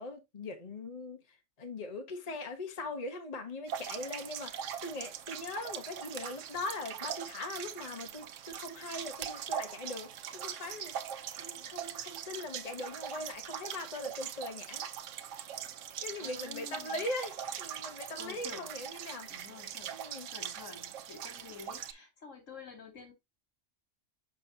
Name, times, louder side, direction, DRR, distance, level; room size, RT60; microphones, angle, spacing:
voice 1, 0.0-14.8 16.0-19.3 19.9-20.3, left 2 dB, 35° left, 1.1 m, -41 dB
sound 1, 3.7-21.9, right 9 dB, 90° right, 1.0 m, -41 dB
voice 2, 16.2-17.1 18.1-18.7 19.3-20.0 20.3-23.1, left 5 dB, 85° left, 2.8 m, -49 dB
6.2 x 5.7 x 2.7 m
omnidirectional pair, 1.3 m